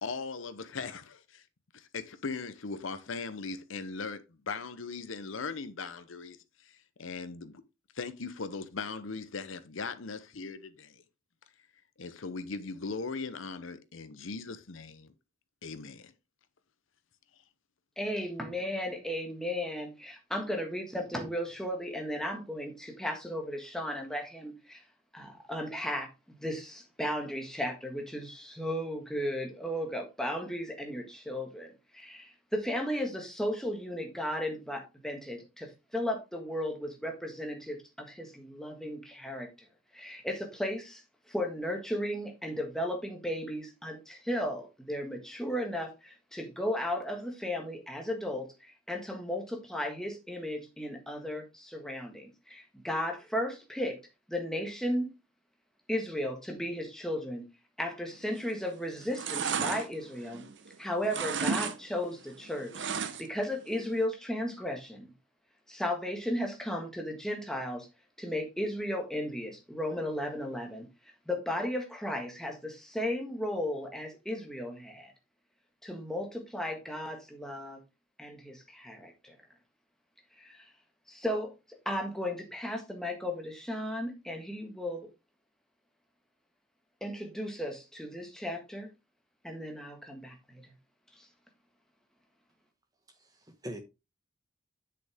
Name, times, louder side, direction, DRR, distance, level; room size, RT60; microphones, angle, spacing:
voice 1, 0.0-1.4 1.7-7.6 7.9-11.0 12.0-15.1 15.6-16.1, left 4 dB, 85° left, 0.8 m, -39 dB
voice 2, 18.0-24.8 25.1-39.5 39.9-54.0 54.3-55.1 55.9-57.5 57.8-60.5 60.8-65.1 65.7-67.9 68.2-70.9 71.3-75.1 75.8-77.8 78.2-79.3 80.4-80.6 81.1-85.1 87.0-88.9 89.4-90.6 91.2-91.3, left 1 dB, 5° left, 1.6 m, -35 dB
sound 1, 58.3-58.7 59.0-60.7 61.0-61.8 62.0-63.4 63.8-63.9, right 5 dB, 65° right, 0.8 m, -33 dB
voice 3, 93.1-93.8, equal, 20° right, 1.3 m, -43 dB
7.9 x 6.5 x 3.5 m
head